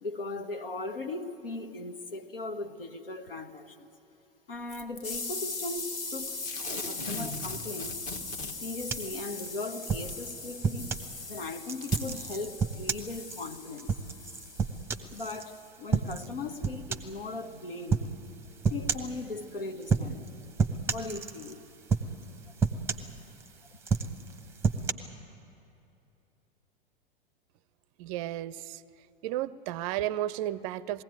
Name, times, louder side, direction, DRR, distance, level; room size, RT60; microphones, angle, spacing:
voice 1, 0.0-3.9 4.5-6.4 6.9-7.9 8.6-10.9 11.2-13.9 15.1-18.0 18.7-20.2 20.9-21.6, left 2 dB, 70° left, 1.3 m, -38 dB
Packing tape duct tape / Tearing, 4.7-5.2 6.4-8.9 10.1-10.2 11.1-11.2 11.8-12.1 12.7-12.8, left 3 dB, 25° left, 1.4 m, -39 dB
sound 1, 5.0-15.7, left 3 dB, 40° left, 2.1 m, -40 dB
sound 2, 8.9-11.1 11.6-15.4 15.9-16.3 16.6-17.2 17.9-18.1 18.6-19.2 19.8-20.3 20.6-21.6 21.9-22.3 22.6-23.5 23.8-24.9, right 5 dB, 10° right, 0.9 m, -30 dB
voice 2, 28.0-28.6 29.2-31.0, right 13 dB, 35° right, 0.5 m, -32 dB
21.0 x 16.5 x 9.4 m
figure-of-eight pair, 95°, 29 cm